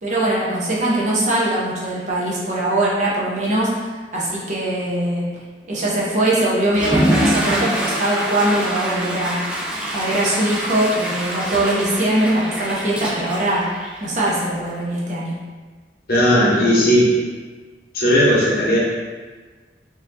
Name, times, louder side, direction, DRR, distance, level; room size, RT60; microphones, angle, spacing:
voice 1, 0.0-5.2 5.6-9.4 9.9-13.6 14.0-15.3, right 1 dB, 40° right, -6 dB, 0.7 m, -21 dB
Water / Toilet flush, 6.7-14.4, right 1 dB, 5° right, 0.3 m, -25 dB
voice 2, 16.1-17.1 17.9-18.8, equal, 55° left, -5 dB, 0.8 m, -16 dB
3.9 x 2.7 x 2.6 m, 1.4 s
head